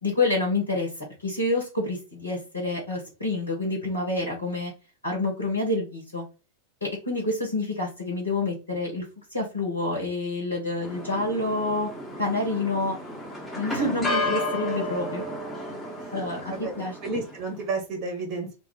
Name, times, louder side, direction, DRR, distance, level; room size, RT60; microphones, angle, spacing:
voice 1, 0.0-4.7 5.0-6.2 6.8-9.0 9.3-11.9 12.2-13.0 13.6-15.2 16.1-17.0, left 2 dB, 80° left, -1 dB, 1.2 m, -28 dB
sound 1, 10.8-17.4, left 1 dB, 5° left, 1.0 m, -32 dB
voice 2, 16.5-18.5, right 3 dB, 30° right, 3 dB, 0.9 m, -32 dB
2.4 x 2.3 x 3.7 m, 0.31 s
figure-of-eight pair, 90°, 0 cm